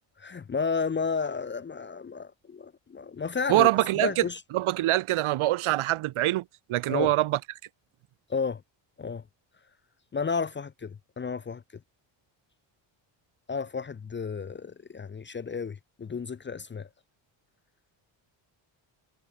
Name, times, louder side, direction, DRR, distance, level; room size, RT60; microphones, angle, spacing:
voice 1, 0.2-3.7 4.0-4.4 6.9-7.1 8.3-8.6 9.0-9.2 10.1-11.6 13.5-16.9, left 5 dB, 20° left, 0.9 m, -32 dB
voice 2, 3.5-4.3 4.5-6.4 6.7-7.4, right 15 dB, 75° right, 1.8 m, -24 dB
cardioid pair, 160°, 49 cm